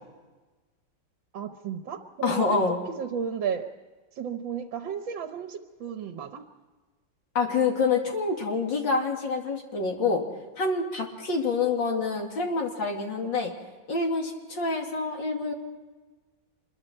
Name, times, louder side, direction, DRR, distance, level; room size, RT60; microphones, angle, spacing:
voice 1, 1.3-2.6 3.0-3.7 4.2-6.4, right 7 dB, 80° right, 6 dB, 1.9 m, -33 dB
voice 2, 2.2-2.8 7.3-10.2 10.6-13.5 13.9-15.5, left 4 dB, 75° left, 1 dB, 3.4 m, -27 dB
26.0 x 22.0 x 4.5 m, 1.3 s
omnidirectional pair, 2.1 m